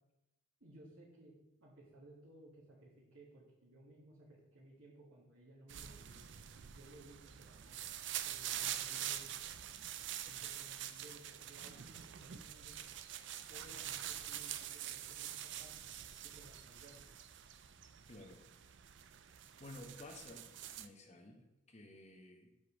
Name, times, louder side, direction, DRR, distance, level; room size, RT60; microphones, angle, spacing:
voice 1, 0.6-6.3 6.7-7.8 8.2-9.3 10.3-12.8 13.5-15.8 16.2-17.0, right 1 dB, 80° right, -8 dB, 2.0 m, -59 dB
sound 1, 5.7-20.9, right 11 dB, 55° right, 0.4 m, -45 dB
voice 2, 18.1-18.4 19.6-20.5 20.8-22.5, left 2 dB, 30° left, 2 dB, 1.1 m, -53 dB
6.5 x 5.5 x 5.2 m, 0.94 s
head